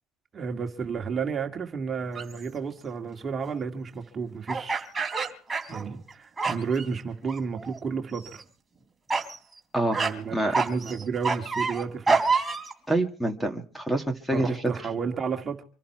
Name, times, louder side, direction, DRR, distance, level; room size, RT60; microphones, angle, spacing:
voice 1, 0.3-4.9 5.7-8.4 9.9-12.2 14.3-15.6, right 5 dB, 30° right, 2.1 m, -32 dB
sound 1, 2.1-2.4 4.5-6.1 6.4-6.9 7.3-7.8 8.1-8.4 9.1-9.4 9.9-10.1 10.5-12.7, right 4 dB, 15° right, 3.2 m, -27 dB
voice 2, 9.7-10.0 10.3-10.6 12.9-14.5, right 1 dB, 5° left, 2.3 m, -26 dB
26.0 x 11.5 x 4.6 m
supercardioid pair, 100°, 0 cm